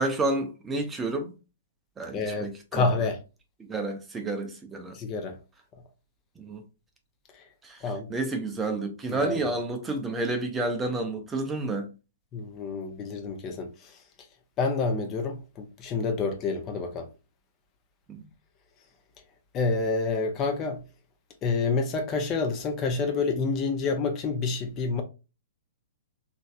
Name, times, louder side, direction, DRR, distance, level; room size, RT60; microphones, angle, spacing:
voice 1, 0.0-1.3 2.0-2.9 3.6-5.0 6.4-6.6 7.6-11.9 18.1-18.3, right 2 dB, 15° right, 0.6 m, -30 dB
voice 2, 2.1-3.2 4.9-5.4 7.3-7.4 7.8-8.1 9.1-9.4 12.3-14.0 14.6-17.1 19.5-20.8 21.4-25.0, left 4 dB, 30° left, 0.6 m, -28 dB
3.1 x 2.6 x 2.4 m
figure-of-eight pair, 115°, 0 cm